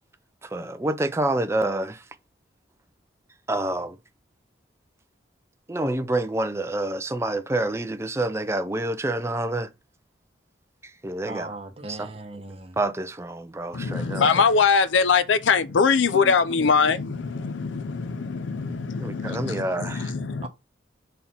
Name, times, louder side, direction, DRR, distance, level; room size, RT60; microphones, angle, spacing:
voice 1, 0.4-2.0 3.5-4.0 5.7-9.7 11.0-11.5 11.9-12.0 12.8-14.3 16.2-16.3 19.0-20.1, right 2 dB, 15° right, 0.5 m, -27 dB
voice 2, 11.2-12.8 20.4-20.5, right 2 dB, 30° right, 1.1 m, -38 dB
voice 3, 13.7-20.5, left 5 dB, 85° left, 0.5 m, -22 dB
4.3 x 4.2 x 5.5 m
head